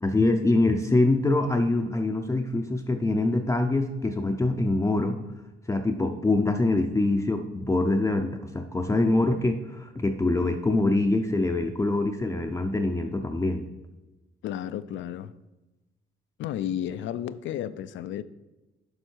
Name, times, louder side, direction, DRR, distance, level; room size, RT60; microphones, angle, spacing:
voice 1, 0.0-5.2 5.7-13.7, left 2 dB, 15° left, 4 dB, 0.5 m, -24 dB
voice 2, 14.4-15.3 16.4-18.2, left 10 dB, 75° left, 14 dB, 0.4 m, -32 dB
8.0 x 5.3 x 4.5 m, 1.1 s
cardioid pair, 90°, 20 cm